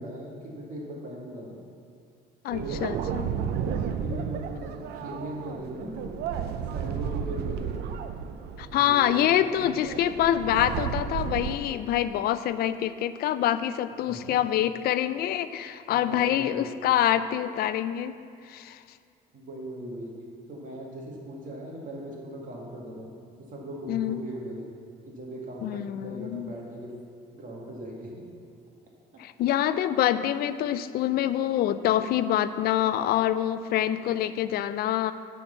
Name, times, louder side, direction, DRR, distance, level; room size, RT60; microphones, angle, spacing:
voice 1, 0.0-1.6 2.5-2.9 3.6-6.3 6.7-8.0 8.6-9.3 9.6-9.7 14.0-14.4 15.9-16.8 19.3-24.7 25.0-27.0 27.3-28.3 29.1-29.2, right 1 dB, 50° right, -2 dB, 2.0 m, -39 dB
voice 2, 2.4-3.3 8.6-18.1 18.5-18.8 23.9-24.2 25.6-26.5 29.2-35.1, left 11 dB, 65° left, 13 dB, 0.4 m, -26 dB
sound 1, 2.5-11.6, right 8 dB, 70° right, 0.6 m, -33 dB
9.7 x 4.6 x 7.1 m, 2.3 s
cardioid pair, 110°, 17 cm